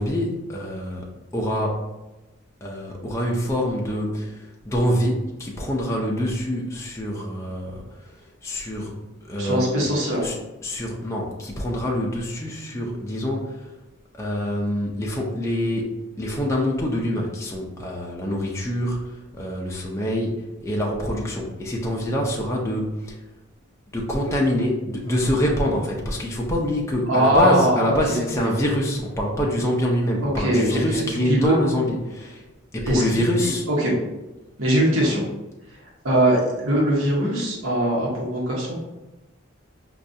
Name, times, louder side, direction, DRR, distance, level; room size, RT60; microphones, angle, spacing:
voice 1, 0.0-1.9 2.6-8.2 8.4-9.9 10.2-10.4 10.6-13.7 14.1-23.2 23.9-32.4 32.7-33.7, equal, 15° left, -2 dB, 0.4 m, -25 dB
voice 2, 9.4-10.3 27.1-28.5 30.2-31.6 32.8-33.0 33.8-33.9 34.6-35.2 36.0-38.7, right 1 dB, 80° right, -3 dB, 1.0 m, -21 dB
5.0 x 2.3 x 2.6 m, 1.0 s
head